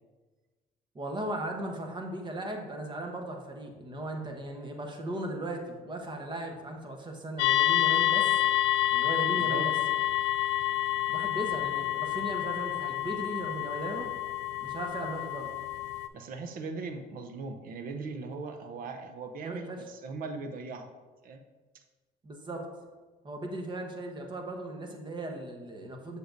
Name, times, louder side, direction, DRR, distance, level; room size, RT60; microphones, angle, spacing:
voice 1, 0.9-8.4 8.9-9.7 11.1-14.1 14.6-15.6 19.4-19.8 22.2-22.7 23.2-26.2, right 1 dB, 25° right, 2 dB, 1.1 m, -37 dB
sound 1, 7.4-16.1, left 14 dB, 90° left, 0.4 m, -28 dB
voice 2, 9.3-9.7 16.1-20.9 21.2-21.4, right 4 dB, 60° right, 7 dB, 0.7 m, -39 dB
6.9 x 6.5 x 2.6 m, 1.3 s
cardioid pair, 110°, 17 cm